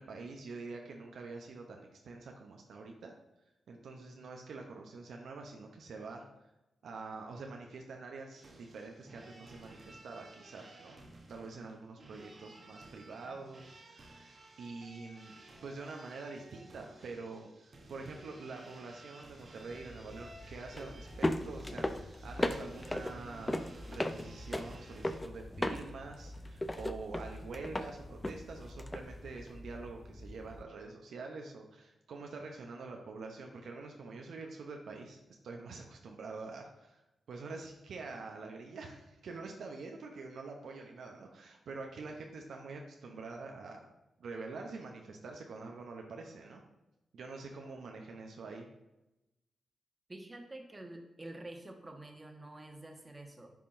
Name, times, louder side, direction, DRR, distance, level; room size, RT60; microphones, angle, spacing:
voice 1, 0.0-3.1 3.7-6.3 6.8-11.0 11.3-17.5 17.9-35.2 35.4-37.0 37.3-43.9 44.2-46.6 47.1-48.7, right 3 dB, 75° right, 2 dB, 0.6 m, -46 dB
sound 1, 8.3-25.2, right 2 dB, 55° right, 0.9 m, -55 dB
sound 2, 19.7-30.6, left 1 dB, 20° left, 0.5 m, -38 dB
voice 2, 50.1-53.5, right 1 dB, 25° right, 3 dB, 1.2 m, -48 dB
10.0 x 3.6 x 2.6 m, 0.95 s
supercardioid pair, 45°, 0 cm